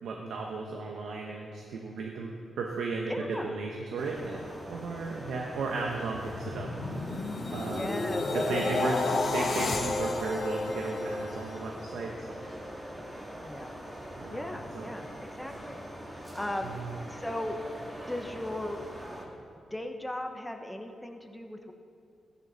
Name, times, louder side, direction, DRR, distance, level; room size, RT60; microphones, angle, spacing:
voice 1, 0.0-3.1 3.4-4.4 4.7-6.7 7.5-8.0 8.3-12.5 14.2-14.5 14.7-14.9 16.6-16.9, right 3 dB, 90° right, 0 dB, 1.2 m, -35 dB
voice 2, 3.1-3.6 7.7-8.3 13.4-13.8 14.3-15.8 16.1-16.7 17.1-17.6 18.1-18.8 19.7-21.7, left 1 dB, 5° left, 4 dB, 1.1 m, -37 dB
sound 1, 4.0-19.2, equal, 20° right, 2.1 m, -43 dB
sound 2, 5.7-12.0 12.4-12.7, left 3 dB, 55° left, 1.7 m, -32 dB
15.5 x 11.0 x 4.3 m, 2.5 s
cardioid pair, 105°, 0 cm